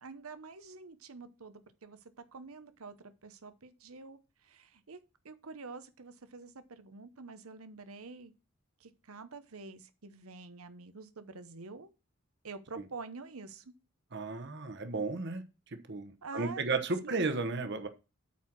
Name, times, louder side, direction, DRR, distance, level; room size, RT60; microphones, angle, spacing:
voice 1, 0.0-3.0 3.2-5.0 5.2-8.3 8.8-11.9 12.4-13.7 16.2-16.7 17.0-17.3, right 4 dB, 85° right, 1.0 m, -47 dB
voice 2, 14.1-15.4 15.9-17.9, right 3 dB, 55° right, 1.1 m, -33 dB
8.4 x 4.6 x 6.0 m
head